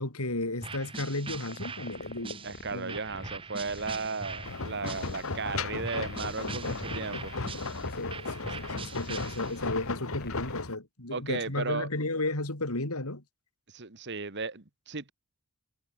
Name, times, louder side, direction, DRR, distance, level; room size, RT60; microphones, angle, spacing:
voice 1, 0.0-3.0 8.0-13.2, left 2 dB, 85° left, 4.1 m, -34 dB
sound 1, 0.6-5.4 5.8-9.8, right 4 dB, 25° right, 1.2 m, -42 dB
sound 2, 1.4-10.7, left 2 dB, 45° left, 6.4 m, -46 dB
voice 2, 2.4-7.3 11.1-11.9 13.7-15.1, right 4 dB, 50° right, 1.8 m, -35 dB
sound 3, 4.4-10.8, left 3 dB, 70° left, 1.7 m, -36 dB
head